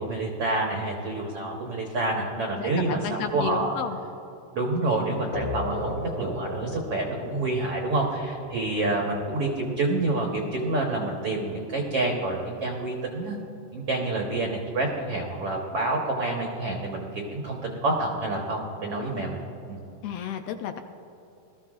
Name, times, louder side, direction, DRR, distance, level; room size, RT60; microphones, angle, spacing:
voice 1, 0.0-3.7 4.5-13.4 13.7-19.4 19.7-19.8, right 2 dB, 90° right, -1 dB, 1.3 m, -28 dB
voice 2, 2.6-4.0 20.0-20.8, left 8 dB, 80° left, 7 dB, 2.2 m, -32 dB
sound 1, 5.3-10.7, left 1 dB, 60° left, 3.2 m, -36 dB
20.0 x 14.0 x 2.5 m, 2.9 s
omnidirectional pair, 4.6 m